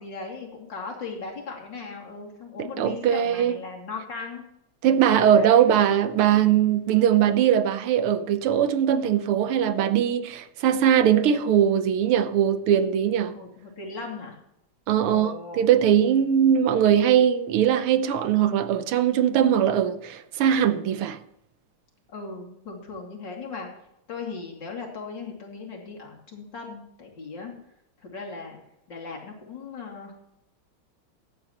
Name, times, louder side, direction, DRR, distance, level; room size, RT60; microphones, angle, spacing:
voice 1, 0.0-4.4 5.3-5.6 13.3-14.4 15.1-15.7 22.1-23.7 24.1-27.5 28.0-28.6 28.9-30.1, left 4 dB, 55° left, 3.3 m, -38 dB
voice 2, 2.6-3.6 4.8-13.4 14.9-21.2, right 9 dB, 85° right, 1.7 m, -21 dB
16.0 x 10.5 x 3.0 m
omnidirectional pair, 2.3 m